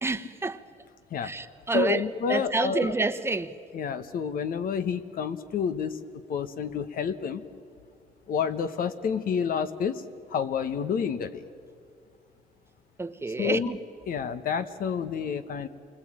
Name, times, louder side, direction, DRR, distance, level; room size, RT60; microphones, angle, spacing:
voice 1, 0.0-0.6 1.2-2.0 2.3-3.5 13.0-13.8, right 3 dB, 15° right, 1.1 m, -28 dB
voice 2, 1.7-2.9 3.7-6.0 6.3-7.4 8.3-10.0 10.3-11.4 13.4-13.7 14.1-15.7, left 6 dB, 65° left, 1.4 m, -29 dB
28.0 x 21.0 x 9.0 m
cardioid pair, 100°, 16 cm